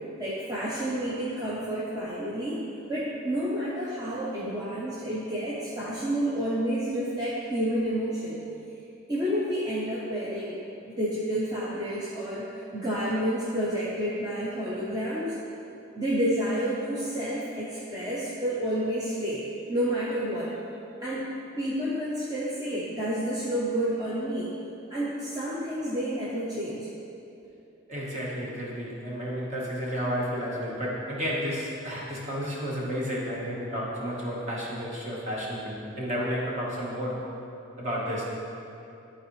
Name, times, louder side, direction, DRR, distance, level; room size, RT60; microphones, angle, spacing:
voice 1, 0.2-2.6 2.9-8.4 9.1-15.4 15.9-20.5 21.0-24.5 24.9-26.9, equal, 20° right, -9 dB, 0.8 m, -30 dB
voice 2, 27.9-37.2 37.8-38.3, equal, 35° right, -5 dB, 1.4 m, -32 dB
12.5 x 4.1 x 3.2 m, 2.8 s
head